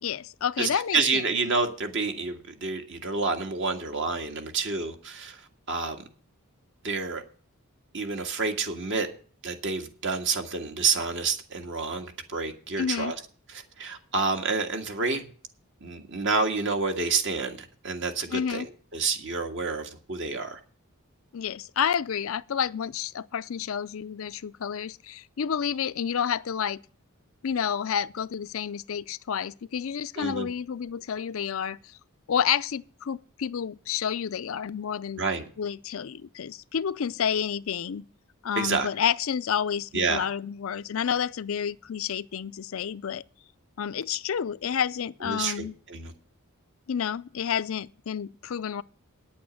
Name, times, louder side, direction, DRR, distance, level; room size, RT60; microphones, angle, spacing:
voice 1, 0.0-1.2 12.8-13.1 18.3-18.7 21.3-26.8 27.4-31.8 32.3-35.2 35.6-38.0 38.4-43.2 43.8-45.7 46.9-48.8, left 8 dB, 65° left, 0.5 m, -30 dB
voice 2, 0.6-5.4 5.7-6.0 6.8-7.2 7.9-9.1 9.4-13.2 13.5-15.3 15.8-20.6 30.2-30.5 35.2-35.5 38.6-38.9 39.9-40.3 45.2-46.1, right 4 dB, 60° right, 1.8 m, -29 dB
9.6 x 8.6 x 7.3 m
head